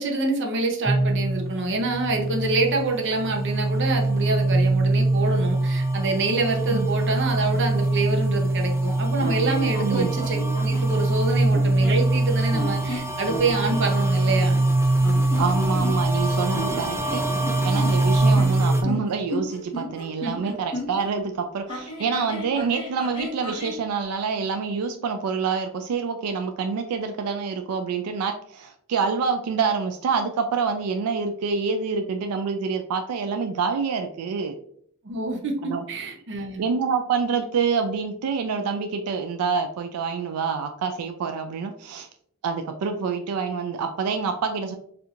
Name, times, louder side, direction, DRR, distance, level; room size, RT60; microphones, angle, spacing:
voice 1, 0.0-14.6 20.2-20.5 35.0-36.6, right 3 dB, 55° right, 2 dB, 0.7 m, -26 dB
Horror sound rise, 0.9-18.8, right 2 dB, 10° right, 0.3 m, -23 dB
sound 1, 9.2-10.9 11.5-12.1 12.5-13.8 15.0-16.2 16.5-21.1 21.7-23.8, equal, 20° left, 1.2 m, -34 dB
voice 2, 9.8-10.1 15.4-17.2 17.6-34.5 35.6-35.8 36.6-42.1 42.4-44.8, right 5 dB, 90° right, 6 dB, 0.4 m, -27 dB
4.2 x 2.7 x 2.4 m, 0.65 s
head